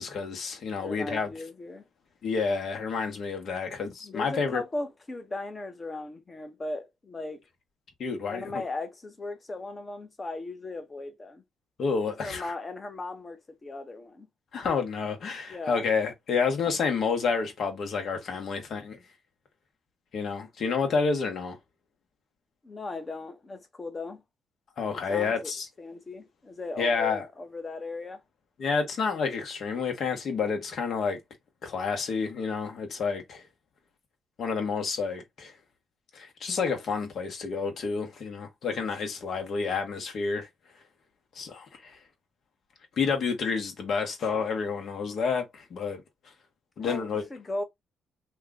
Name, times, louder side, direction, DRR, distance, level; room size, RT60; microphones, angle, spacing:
voice 1, 0.0-1.3 2.2-4.6 8.0-8.6 11.8-12.5 14.5-19.0 20.1-21.6 24.8-25.7 26.8-27.2 28.6-31.2 31.6-33.4 34.4-35.5 36.1-40.5 41.3-42.0 43.0-46.0 46.8-47.2, left 5 dB, 60° left, 1.1 m, -29 dB
voice 2, 0.8-1.8 4.0-7.4 8.3-11.4 12.2-14.3 15.5-15.8 22.6-24.2 24.9-25.5 25.8-28.2 46.8-47.6, left 2 dB, 25° left, 0.9 m, -37 dB
2.9 x 2.3 x 3.7 m
cardioid pair, 90°, 0 cm